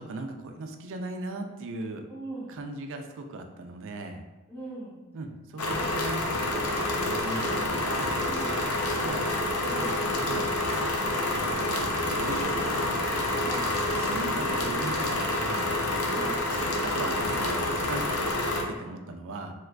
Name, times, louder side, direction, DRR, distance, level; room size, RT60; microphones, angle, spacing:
voice 1, 0.0-2.1 2.5-4.2 5.1-6.7 7.0-9.3 10.2-13.1 13.9-15.8 16.8-19.5, right 2 dB, 60° right, 5 dB, 0.4 m, -39 dB
voice 2, 2.1-2.6 4.5-5.0 8.3-8.5 9.7-10.0 13.4-13.7 16.1-16.4, right 1 dB, 10° left, -7 dB, 0.8 m, -39 dB
sound 1, 5.6-18.6, left 1 dB, 75° left, 0.5 m, -28 dB
2.9 x 2.4 x 3.3 m, 1.1 s
head